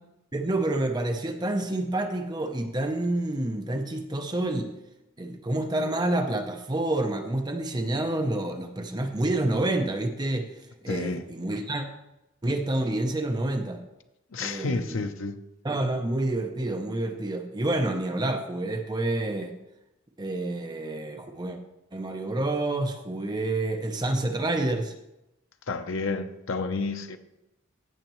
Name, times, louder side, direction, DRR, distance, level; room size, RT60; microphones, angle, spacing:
voice 1, 0.3-4.7 5.2-10.5 10.8-11.8 12.4-13.8 14.4-15.1 15.6-19.5 20.2-21.6 21.9-24.9, right 2 dB, 20° right, 0.7 m, -28 dB
voice 2, 10.9-11.2 14.3-15.4 25.7-27.2, left 3 dB, 70° left, 0.7 m, -30 dB
15.5 x 6.5 x 3.1 m
head